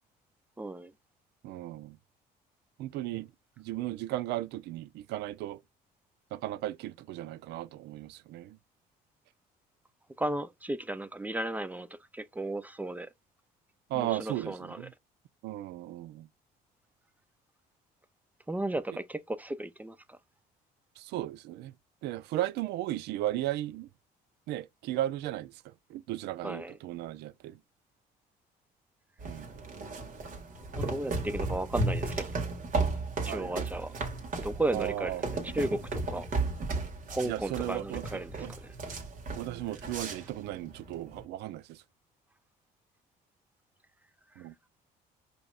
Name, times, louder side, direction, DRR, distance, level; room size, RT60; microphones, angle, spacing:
voice 1, 0.6-0.9 10.2-11.9 12.1-13.1 13.9-14.9 18.5-20.2 26.4-26.8 30.7-32.3 33.2-33.9 34.4-35.1 35.4-36.3 37.1-38.5, right 1 dB, 10° right, 0.4 m, -34 dB
voice 2, 1.4-2.0 2.8-3.3 3.6-5.6 6.3-8.6 13.9-14.9 15.4-16.3 21.0-21.7 22.0-23.9 24.5-25.5 25.9-27.6 29.2-29.5 33.3-33.7 34.7-35.2 37.2-38.5 39.4-41.8 44.4-44.5, right 14 dB, 80° right, 0.4 m, -35 dB
sound 1, 29.2-41.2, right 3 dB, 55° right, 1.7 m, -35 dB
5.0 x 3.0 x 2.3 m
cardioid pair, 110°, 17 cm